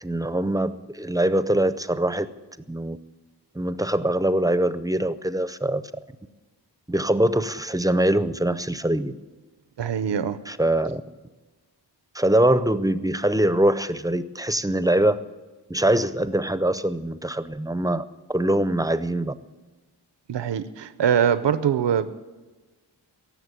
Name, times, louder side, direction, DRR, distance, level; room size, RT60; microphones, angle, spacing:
voice 1, 0.0-2.3 2.7-3.0 3.5-5.8 6.9-9.2 10.5-11.0 12.1-15.2 15.7-18.0 18.3-19.3, right 1 dB, 10° right, 13 dB, 0.5 m, -23 dB
voice 2, 9.8-10.4 20.3-22.1, right 8 dB, 80° right, 13 dB, 0.7 m, -23 dB
17.5 x 7.4 x 9.6 m, 1.2 s
wide cardioid pair, 120°, 42 cm